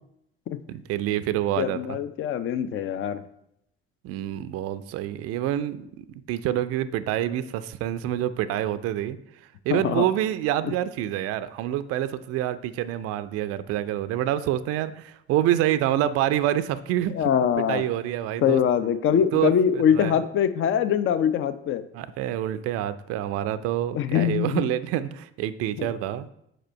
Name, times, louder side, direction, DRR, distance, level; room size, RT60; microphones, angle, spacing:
voice 1, 0.7-2.0 4.0-9.2 9.6-17.3 17.7-18.6 19.3-20.2 21.9-26.3, right 12 dB, 50° right, 13 dB, 0.4 m, -27 dB
voice 2, 1.6-3.2 9.7-10.1 17.1-17.8 18.4-21.8 23.9-24.7 25.8-25.9, left 8 dB, 40° left, 12 dB, 0.5 m, -23 dB
4.9 x 4.4 x 4.4 m, 0.76 s
figure-of-eight pair, 50°, 30 cm